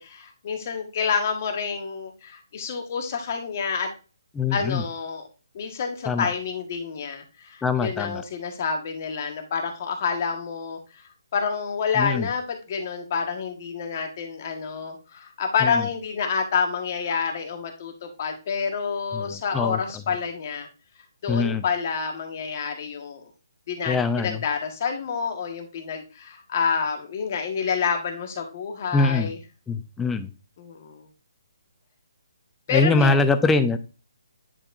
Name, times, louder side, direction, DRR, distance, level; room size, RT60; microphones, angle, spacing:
voice 1, 0.0-3.9 4.5-5.2 5.5-20.7 21.2-23.3 23.7-29.4 30.6-31.1 32.7-33.3, left 6 dB, 40° left, 4 dB, 1.4 m, -28 dB
voice 2, 4.4-4.8 6.1-6.3 7.6-8.2 11.9-12.3 15.6-15.8 19.1-19.8 21.3-21.6 23.9-24.4 28.9-29.3 29.7-30.3 32.7-33.8, left 3 dB, 5° left, 9 dB, 0.4 m, -23 dB
9.9 x 4.4 x 2.5 m, 0.33 s
hypercardioid pair, 155°, 2 cm